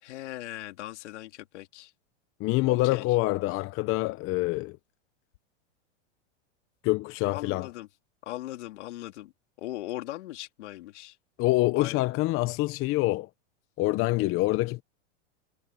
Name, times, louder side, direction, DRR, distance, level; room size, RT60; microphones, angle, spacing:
voice 1, 0.0-1.9 2.7-3.1 7.3-7.9 8.2-9.3 9.6-11.2 11.8-12.1, left 15 dB, 75° left, 3.5 m, -39 dB
voice 2, 2.4-4.8 6.8-7.7 11.4-13.3 13.8-14.8, left 19 dB, 35° left, 0.8 m, -26 dB
supercardioid pair, 130°, 35 cm